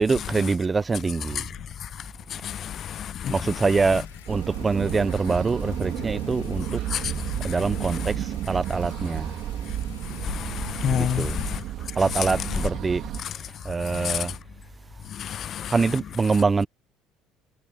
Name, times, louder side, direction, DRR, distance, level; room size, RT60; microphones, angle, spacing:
voice 1, 0.0-1.5 3.3-6.8 7.4-9.3 10.9-11.4 12.0-13.0 13.6-14.3 15.7-16.7, right 4 dB, 25° right, 0.8 m, -24 dB
voice 2, 2.3-3.3 6.9-7.0 10.2-11.4 14.0-14.2 15.2-15.7, left 10 dB, 50° left, 0.3 m, -29 dB
sound 1, 3.8-11.6, left 14 dB, 85° left, 6.4 m, -52 dB
sound 2, 4.3-13.2, right 13 dB, 60° right, 2.9 m, -32 dB
hypercardioid pair, 65°, 0 cm